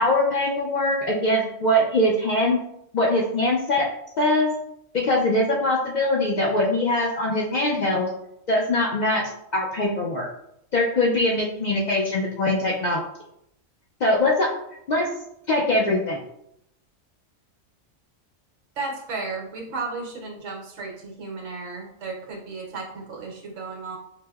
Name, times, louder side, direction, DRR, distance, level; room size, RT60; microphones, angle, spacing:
voice 1, 0.0-2.6 2.9-3.9 4.2-4.5 4.9-8.1 8.5-10.3 10.7-13.0 14.0-14.5 14.9-15.1 15.5-16.2, left 1 dB, 90° left, -2 dB, 0.4 m, -22 dB
voice 2, 18.8-24.0, right 3 dB, 75° right, -2 dB, 1.1 m, -34 dB
5.9 x 2.0 x 2.2 m, 0.78 s
omnidirectional pair, 1.3 m